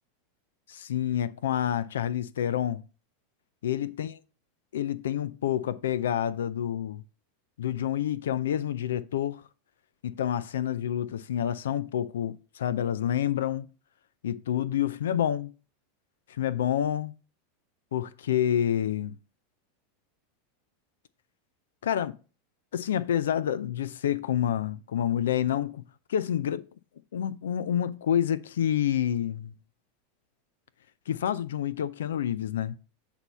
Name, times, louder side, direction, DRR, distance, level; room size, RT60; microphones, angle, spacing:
voice 1, 0.7-2.8 3.6-4.1 4.7-7.0 7.6-9.4 10.0-13.7 14.2-15.5 16.3-17.1 17.9-19.2 21.8-22.1 22.7-25.8 26.1-26.6 27.1-29.5 31.1-32.7, left 10 dB, 85° left, 0.3 m, -28 dB
8.0 x 2.7 x 5.4 m
hypercardioid pair, 105°, 0 cm